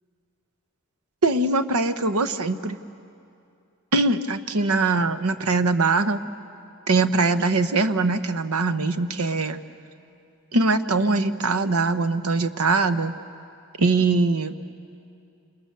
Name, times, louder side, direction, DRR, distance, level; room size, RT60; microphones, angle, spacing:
voice 1, 1.2-2.8 3.9-6.2 6.9-9.6 10.5-13.1 13.8-14.5, right 3 dB, 90° right, 10 dB, 1.0 m, -22 dB
28.5 x 28.0 x 6.9 m, 2.5 s
head